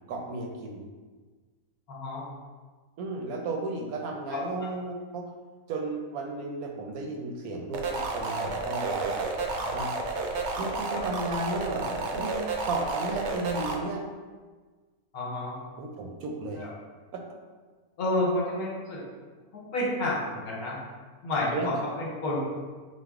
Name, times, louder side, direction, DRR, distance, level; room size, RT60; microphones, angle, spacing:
voice 1, 0.1-0.8 3.0-5.3 5.7-9.3 9.7-9.9 10.6-12.4 12.6-14.0 15.8-16.7 17.1-17.2 21.5-21.7, right 2 dB, 85° right, 2 dB, 1.1 m, -34 dB
voice 2, 1.9-2.2 4.3-4.7 9.6-9.9 10.9-11.0 15.1-15.6 16.5-16.7 18.0-19.0 19.5-20.8 21.2-22.4, left 2 dB, 85° left, -5 dB, 1.5 m, -30 dB
sound 1, 7.7-13.7, right 3 dB, 65° right, 0.7 m, -31 dB
5.5 x 2.1 x 3.5 m, 1.4 s
omnidirectional pair, 1.5 m